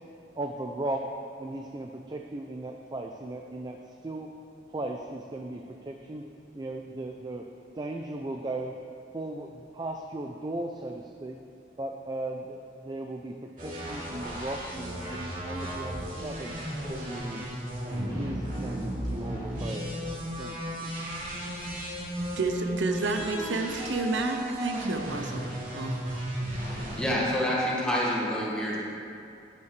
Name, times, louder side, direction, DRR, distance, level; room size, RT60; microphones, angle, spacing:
voice 1, 0.4-1.1 1.4-4.3 4.7-6.2 6.5-7.5 7.7-8.8 9.1-11.4 11.8-16.6 16.9-17.5 17.9-19.9 20.4-20.9, right 2 dB, 25° right, 3 dB, 0.4 m, -37 dB
sound 1, 13.6-27.1, equal, 50° right, 2.7 m, -34 dB
voice 2, 22.4-26.0, right 3 dB, 85° right, 5 dB, 0.7 m, -30 dB
voice 3, 26.9-28.8, equal, 5° left, -6 dB, 1.7 m, -27 dB
11.5 x 9.8 x 3.3 m, 2.6 s
head